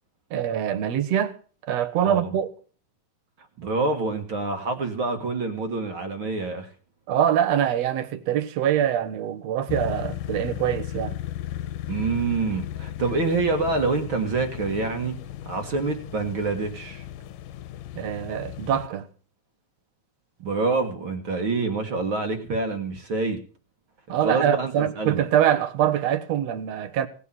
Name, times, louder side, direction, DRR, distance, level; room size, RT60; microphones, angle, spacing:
voice 1, 0.3-1.4 1.7-2.5 7.1-11.2 18.0-19.1 24.1-27.1, right 10 dB, 60° right, 2.0 m, -24 dB
voice 2, 3.6-6.7 11.9-15.2 15.4-17.1 20.4-23.4 24.1-25.2, right 3 dB, 45° right, 2.1 m, -26 dB
sound 1, 9.7-18.9, left 12 dB, 80° left, 2.5 m, -35 dB
18.0 x 8.4 x 7.5 m
omnidirectional pair, 3.8 m